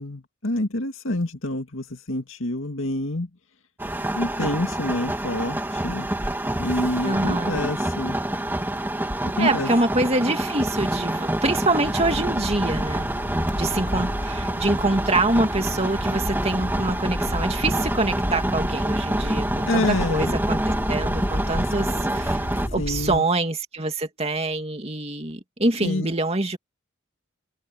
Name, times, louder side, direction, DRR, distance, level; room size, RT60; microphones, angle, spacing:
voice 1, 0.0-3.3 4.1-6.1 6.6-8.2 9.2-9.7 19.7-20.3 22.8-23.2 25.8-26.1, left 1 dB, 70° left, 2.3 m, -27 dB
sound 1, 3.8-22.7, right 1 dB, 10° right, 2.1 m, -27 dB
voice 2, 7.0-7.7 9.4-13.2 13.5-20.6 20.9-22.4 22.7-26.6, right 2 dB, 30° right, 2.6 m, -25 dB
sound 2, 11.8-23.2, equal, 35° left, 2.9 m, -32 dB
head